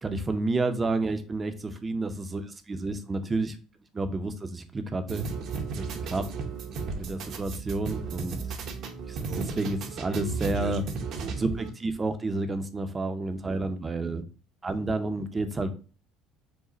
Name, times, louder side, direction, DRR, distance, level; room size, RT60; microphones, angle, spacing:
voice 1, 0.0-3.6 3.9-5.3 5.7-6.2 7.0-8.4 9.1-10.8 11.3-14.2 14.6-15.7, right 2 dB, 20° right, 9 dB, 0.5 m, -30 dB
sound 1, 5.1-11.7, right 4 dB, 55° right, 0.7 m, -34 dB
4.8 x 2.1 x 4.0 m, 0.36 s
cardioid pair, 135°, 0 cm